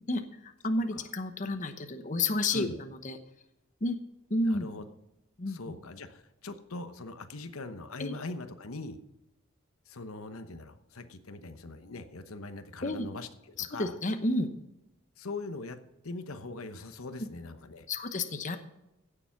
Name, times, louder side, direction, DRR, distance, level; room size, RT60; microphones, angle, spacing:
voice 1, 0.1-3.2 3.8-4.0 4.3-4.7 5.4-5.6 8.0-8.1 12.8-13.1 13.6-14.5 17.2-17.3 17.9-18.6, left 2 dB, 35° left, 8 dB, 1.0 m, -31 dB
voice 2, 4.5-4.8 5.5-9.0 9.9-13.9 15.2-17.9, left 2 dB, 90° left, 9 dB, 1.0 m, -41 dB
16.0 x 7.0 x 5.9 m, 0.91 s
head